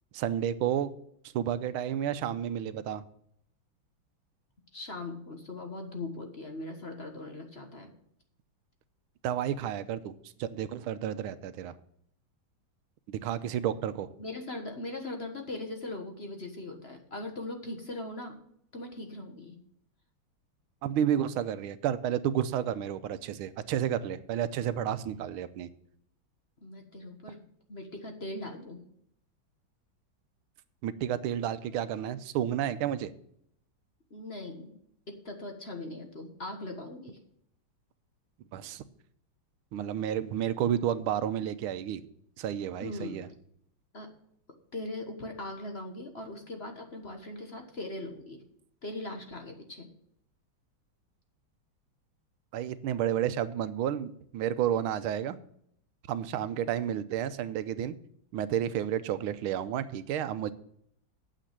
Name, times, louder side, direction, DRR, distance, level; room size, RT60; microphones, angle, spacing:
voice 1, 0.1-0.9 1.3-3.0 9.2-10.1 10.4-11.7 13.1-14.1 20.8-25.7 30.8-33.1 38.5-38.8 39.7-42.0 42.4-43.3 52.5-55.4 56.1-58.0 58.3-60.5, right 10 dB, 90° right, 13 dB, 1.6 m, -31 dB
voice 2, 4.7-7.9 14.2-18.4 18.7-19.6 26.6-27.4 27.7-28.8 34.1-34.7 35.1-37.2 42.8-43.2 43.9-44.1 44.7-48.4 48.8-49.9, left 2 dB, 35° left, 4 dB, 1.4 m, -40 dB
9.1 x 7.5 x 7.3 m, 0.70 s
omnidirectional pair, 2.3 m